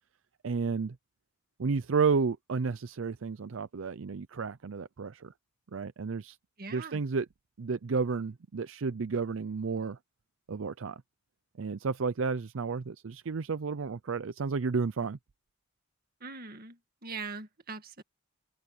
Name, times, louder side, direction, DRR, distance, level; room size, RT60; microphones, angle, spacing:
voice 1, 0.4-1.0 1.6-5.3 5.7-6.4 6.7-7.3 7.6-10.0 10.5-11.0 11.6-15.2, right 5 dB, 75° right, 0.5 m, -31 dB
voice 2, 6.6-7.0 16.2-18.0, right 4 dB, 50° right, 2.0 m, -42 dB
open air
head